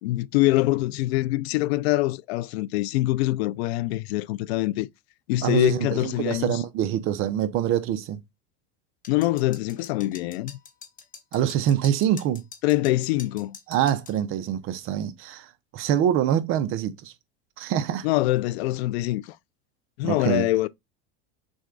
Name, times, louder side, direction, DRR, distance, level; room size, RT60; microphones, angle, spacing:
voice 1, 0.0-4.9 5.3-6.6 9.1-10.6 12.6-13.6 18.0-19.4 20.0-20.7, left 17 dB, 85° left, 0.5 m, -24 dB
voice 2, 5.4-8.2 11.3-12.4 13.7-17.1 17.6-18.1 20.0-20.5, right 10 dB, 45° right, 0.6 m, -25 dB
sound 1, 9.0-14.2, left 6 dB, 25° left, 1.1 m, -45 dB
6.2 x 2.3 x 3.8 m
supercardioid pair, 140°, 31 cm